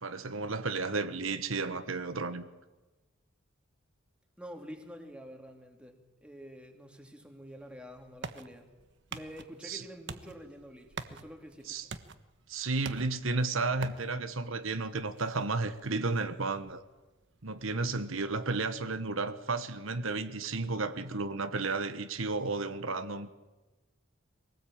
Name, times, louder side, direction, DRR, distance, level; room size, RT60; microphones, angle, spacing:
voice 1, 0.0-2.4 9.6-9.8 11.7-11.9 12.5-16.8 17.4-23.3, right 3 dB, 80° right, 1.3 m, -33 dB
voice 2, 4.4-8.7 9.1-11.9, equal, 5° right, 2.6 m, -48 dB
sound 1, 7.5-19.0, right 4 dB, 60° right, 1.3 m, -48 dB
23.5 x 18.5 x 8.8 m
head